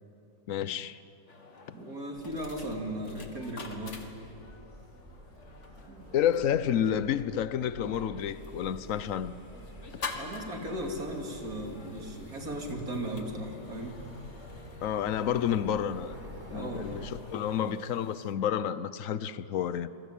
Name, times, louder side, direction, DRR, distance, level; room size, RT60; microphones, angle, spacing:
voice 1, 0.5-1.0 1.7-1.8 6.1-9.3 14.8-16.2 16.5-19.9, left 9 dB, 60° left, 1.0 m, -30 dB
sound 1, 1.3-18.3, left 4 dB, 45° left, 2.2 m, -48 dB
voice 2, 1.7-4.1 5.9-6.1 10.1-14.0 16.5-17.1, right 1 dB, 55° right, 3.6 m, -37 dB
sound 2, 2.1-17.1, equal, 25° right, 3.8 m, -49 dB
28.5 x 23.0 x 8.6 m
omnidirectional pair, 1.9 m